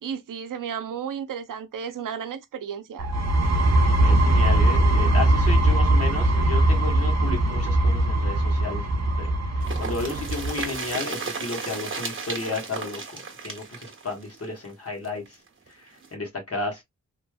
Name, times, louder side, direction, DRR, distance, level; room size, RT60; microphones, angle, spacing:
voice 1, 0.0-3.1, right 7 dB, 90° right, 0.6 m, -33 dB
sound 1, 3.0-10.6, right 1 dB, 55° right, 0.9 m, -21 dB
voice 2, 4.0-8.9 9.2-15.4 15.7-16.8, left 3 dB, 45° left, 1.4 m, -33 dB
sound 2, 9.6-15.3 15.7-15.8 16.0-16.1, right 4 dB, 40° right, 1.3 m, -34 dB
3.2 x 2.9 x 2.2 m
cardioid pair, 60°, 31 cm